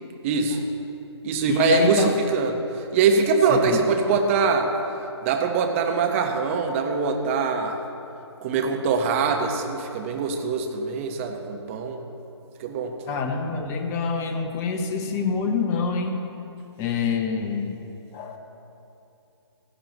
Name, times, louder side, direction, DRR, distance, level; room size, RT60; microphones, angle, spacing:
voice 1, 0.2-0.6 1.2-4.7 5.2-7.8 8.4-12.0 12.6-12.9, right 5 dB, 30° right, 4 dB, 1.2 m, -23 dB
voice 2, 1.5-2.1 3.5-3.8 8.8-9.0 13.1-16.2 16.8-17.8 18.1-18.4, left 5 dB, 20° left, 4 dB, 1.1 m, -26 dB
16.0 x 14.5 x 3.1 m, 2.8 s
figure-of-eight pair, 140°, 15 cm